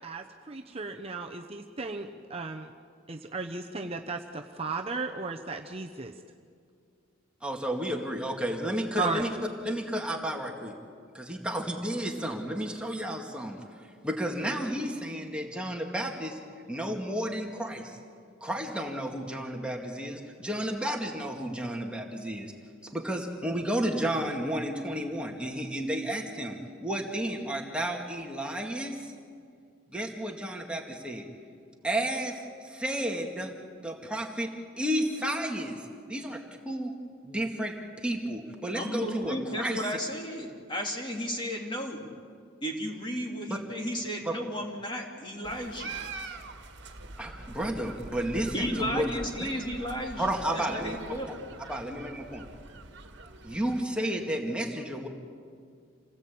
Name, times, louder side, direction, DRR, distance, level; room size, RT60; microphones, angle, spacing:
voice 1, 0.0-2.7 3.1-6.1 9.0-9.2, right 3 dB, 30° right, 3 dB, 0.9 m, -35 dB
voice 2, 7.4-9.3 9.6-10.7 11.1-13.6 14.0-16.4 16.7-18.0 18.4-22.5 22.8-29.1 29.9-31.3 31.8-33.5 33.8-34.5 34.8-35.8 36.1-36.9 37.2-39.8 43.5-43.6 44.2-44.3 47.2-49.1 49.4-49.5 50.2-51.0 51.3-51.4 51.7-52.4 53.4-55.1, right 1 dB, 5° right, 1 dB, 2.1 m, -32 dB
voice 3, 38.7-42.1 42.6-46.0 48.5-51.4, equal, 25° left, 0 dB, 3.0 m, -34 dB
sound 1, 45.4-53.8, right 3 dB, 55° right, 1.8 m, -44 dB
28.0 x 18.5 x 8.6 m, 2.2 s
head